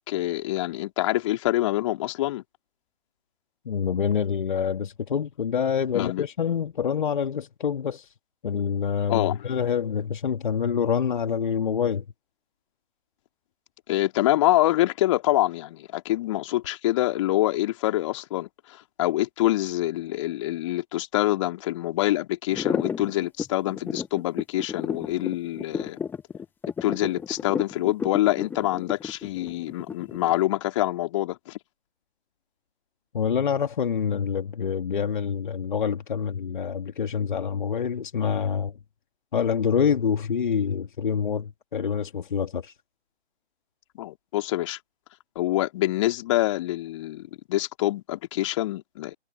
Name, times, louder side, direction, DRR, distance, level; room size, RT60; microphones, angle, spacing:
voice 1, 0.1-2.4 5.9-6.2 9.1-9.4 13.9-26.0 26.8-31.6 43.9-44.8 45.4-49.1, left 15 dB, 30° left, 3.9 m, -26 dB
voice 2, 3.6-8.1 8.4-12.0 33.1-38.7 39.3-42.7, left 7 dB, 45° left, 2.7 m, -26 dB
sound 1, 22.5-30.3, left 6 dB, 5° left, 1.9 m, -31 dB
figure-of-eight pair, 135°, 33 cm